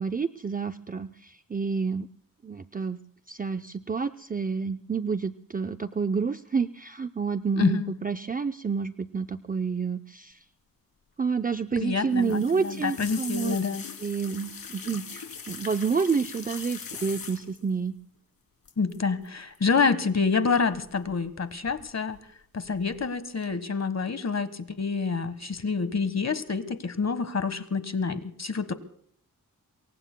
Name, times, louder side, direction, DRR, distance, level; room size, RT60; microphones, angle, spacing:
voice 1, 0.0-2.1 2.4-3.0 3.3-10.4 11.2-13.6 14.0-18.0, right 5 dB, 25° right, 8 dB, 0.5 m, -29 dB
voice 2, 7.6-7.9 11.8-13.8 18.8-22.2 22.5-28.7, left 5 dB, 50° left, 13 dB, 1.4 m, -27 dB
sound 1, 12.1-17.7 18.7-19.0 19.2-19.6 20.7-21.3 21.6-22.2 22.6-23.0 23.4-23.5, left 6 dB, 80° left, 3.2 m, -41 dB
28.0 x 23.0 x 2.2 m, 0.67 s
wide cardioid pair, 115°, 34 cm